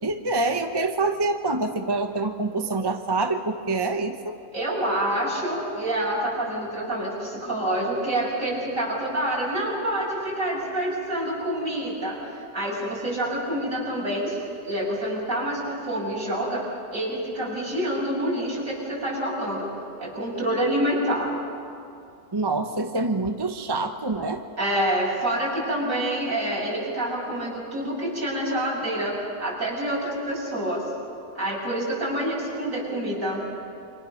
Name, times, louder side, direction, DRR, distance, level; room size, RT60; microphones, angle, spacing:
voice 1, 0.0-4.4 22.3-24.4, right 3 dB, 20° right, 5 dB, 0.9 m, -26 dB
voice 2, 4.5-12.2 12.5-14.4 14.6-19.7 20.0-21.3 24.6-30.9 31.4-33.4, right 1 dB, 50° right, -3 dB, 7.1 m, -27 dB
28.0 x 26.0 x 6.6 m, 2.5 s
omnidirectional pair, 1.7 m